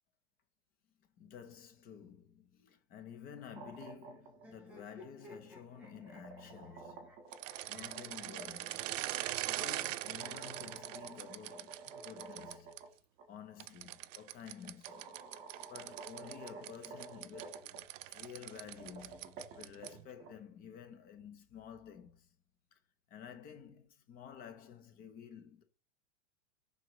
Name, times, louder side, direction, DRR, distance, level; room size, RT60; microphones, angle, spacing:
voice 1, 1.2-7.1 7.7-8.9 9.5-12.7 13.3-15.4 15.7-22.3 22.7-22.8 23.1-25.6, left 8 dB, 25° left, 0.8 m, -52 dB
sound 1, 3.3-4.4 5.6-8.5 10.1-12.9 13.2-13.3 14.3-14.4 14.9-17.8 18.6-20.3, right 4 dB, 30° right, 1.6 m, -51 dB
sound 2, 4.4-10.5 11.5-12.6, left 1 dB, 5° right, 2.5 m, -59 dB
sound 3, 7.3-12.8 13.6-20.1, right 15 dB, 90° right, 0.5 m, -42 dB
10.5 x 4.0 x 3.1 m
supercardioid pair, 165°, 37 cm